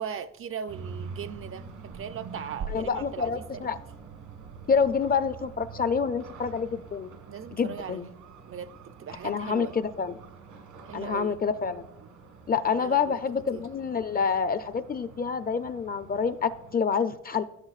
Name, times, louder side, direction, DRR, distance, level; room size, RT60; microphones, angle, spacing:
voice 1, 0.0-3.7 7.3-8.1 8.5-9.8 10.9-11.4 12.8-13.2 13.5-13.6, right 7 dB, 45° right, 0.4 m, -39 dB
sound 1, 0.7-16.8, right 5 dB, 85° right, 1.6 m, -45 dB
voice 2, 2.7-3.8 4.7-7.1 7.5-8.1 9.2-10.1 10.9-11.8 12.5-17.4, left 6 dB, 30° left, 0.5 m, -27 dB
15.0 x 6.5 x 2.4 m
cardioid pair, 90°, 30 cm